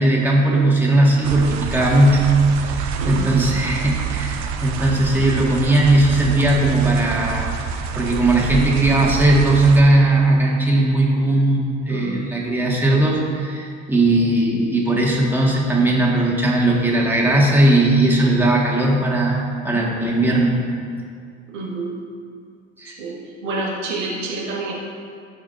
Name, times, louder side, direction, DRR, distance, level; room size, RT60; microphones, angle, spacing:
voice 1, 0.0-2.3 2.6-7.5 7.7-20.5 22.8-23.0, right 1 dB, 5° right, -4 dB, 2.1 m, -18 dB
sound 1, 1.2-9.8, right 6 dB, 50° right, 0.8 m, -27 dB
voice 2, 3.0-3.3 11.9-12.2 21.5-21.9 23.0-23.2 23.4-24.7, right 2 dB, 80° right, -5 dB, 1.8 m, -27 dB
17.0 x 5.8 x 2.7 m, 2.3 s
figure-of-eight pair, 60°, 36 cm